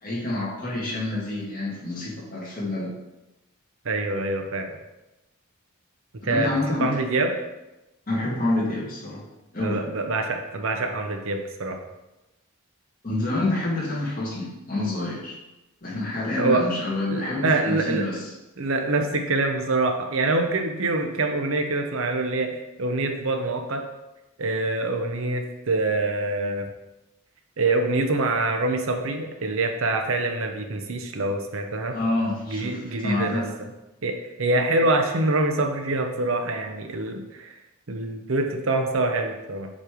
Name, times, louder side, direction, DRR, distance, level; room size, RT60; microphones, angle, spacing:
voice 1, 0.0-2.9 6.2-7.0 8.1-9.2 9.5-9.8 13.0-15.4 15.8-18.3 31.9-33.5, left 2 dB, 40° left, -5 dB, 1.8 m, -27 dB
voice 2, 3.8-4.8 6.2-7.3 9.6-11.8 16.4-16.6 17.1-18.1 18.6-23.8 24.4-26.7 27.6-31.9 32.5-33.4 34.0-37.5 37.9-39.7, right 2 dB, 65° right, 4 dB, 0.7 m, -25 dB
7.4 x 3.2 x 5.0 m, 0.98 s
head